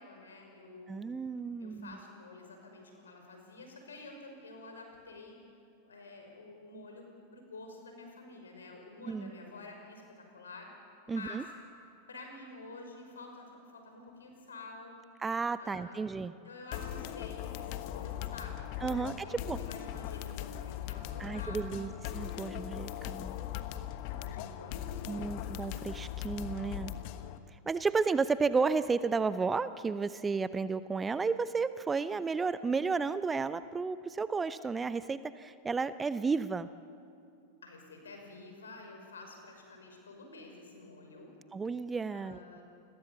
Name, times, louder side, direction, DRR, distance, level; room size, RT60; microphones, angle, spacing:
voice 1, 0.0-1.0 1.6-5.4 5.8-10.7 11.1-11.4 12.1-15.0 15.6-16.1 16.4-21.9 24.0-25.4 37.6-41.3 42.1-42.6, left 2 dB, 70° left, 3 dB, 5.7 m, -49 dB
voice 2, 0.9-2.0 9.1-9.3 11.1-11.4 15.2-16.3 18.8-19.6 21.2-21.9 22.1-23.4 25.1-26.9 27.7-36.7 41.5-42.4, right 4 dB, 15° right, 15 dB, 0.7 m, -32 dB
sound 1, 16.7-27.4, left 12 dB, 45° left, 1.3 m, -40 dB
29.0 x 22.0 x 7.2 m, 2.5 s
figure-of-eight pair, 90°, 0 cm